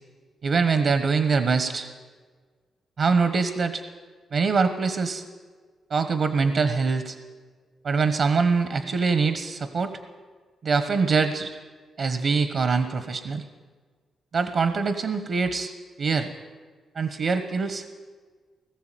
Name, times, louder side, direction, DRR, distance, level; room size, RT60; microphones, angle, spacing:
voice 1, 0.4-1.9 3.0-3.8 4.3-5.2 5.9-7.2 7.8-10.0 10.6-11.5 12.0-13.4 14.3-15.7 16.0-16.3 16.9-18.0, right 4 dB, 50° right, 9 dB, 1.3 m, -24 dB
19.5 x 14.5 x 9.2 m, 1.5 s
wide cardioid pair, 150°, 0 cm